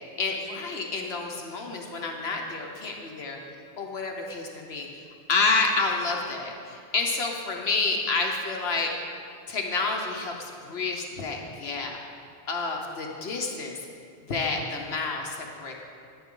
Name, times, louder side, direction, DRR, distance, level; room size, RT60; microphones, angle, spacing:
voice 1, 0.2-3.4 3.8-4.9 5.3-8.9 9.5-12.0 12.5-13.8 14.3-15.7, left 3 dB, 70° left, 1 dB, 1.2 m, -29 dB
10.5 x 9.7 x 3.8 m, 2.4 s
omnidirectional pair, 1.1 m